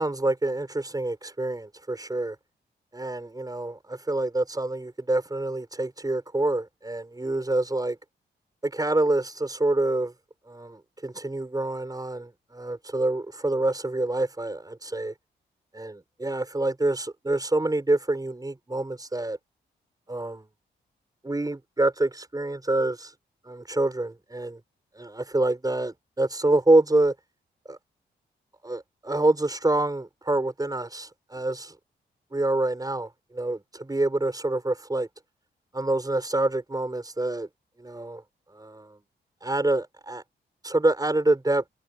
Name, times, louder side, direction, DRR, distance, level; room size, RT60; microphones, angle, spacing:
voice 1, 0.0-2.4 2.9-8.0 8.6-10.1 10.5-15.1 15.7-19.4 20.1-20.5 21.2-23.1 23.5-24.6 24.9-27.1 27.7-27.8 28.6-31.8 32.3-35.1 35.7-37.5 37.8-38.2 38.5-39.0 39.4-40.2 40.6-41.6, right 2 dB, 20° right, 6.0 m, -26 dB
cardioid pair, 65°, 19 cm